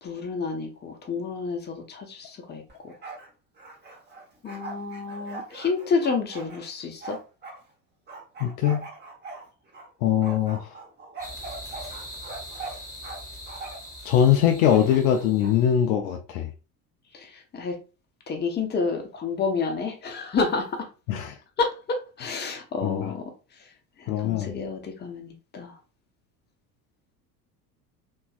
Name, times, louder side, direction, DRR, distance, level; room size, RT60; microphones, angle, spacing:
voice 1, 0.0-2.9 4.4-7.2 17.1-17.8 18.3-20.9 21.6-23.2 23.6-23.7 24.0-25.8, left 4 dB, 20° left, 0.7 m, -30 dB
Bark, 2.7-3.3 3.6-7.6 8.1-9.9 10.2-13.2 13.5-13.9 14.6-15.5, right 3 dB, 20° right, 1.0 m, -41 dB
voice 2, 8.4-8.9 10.0-10.8 14.0-16.5 21.1-21.4 22.8-23.1 24.1-24.6, left 9 dB, 60° left, 0.6 m, -22 dB
sound 1, 11.2-15.7, equal, 5° right, 1.5 m, -42 dB
3.0 x 2.7 x 2.3 m
figure-of-eight pair, 65°, 48 cm